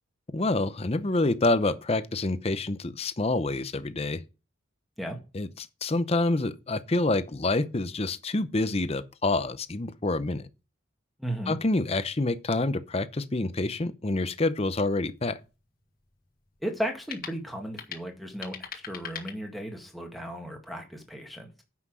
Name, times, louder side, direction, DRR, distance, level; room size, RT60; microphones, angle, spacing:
voice 1, 0.3-4.2 5.3-10.5 11.5-15.4, left 2 dB, 30° left, 0.7 m, -27 dB
voice 2, 11.2-11.6 16.6-21.5, equal, ahead, 1.7 m, -35 dB
sound 1, 15.0-20.0, left 8 dB, 45° left, 1.6 m, -44 dB
9.8 x 5.8 x 6.2 m
head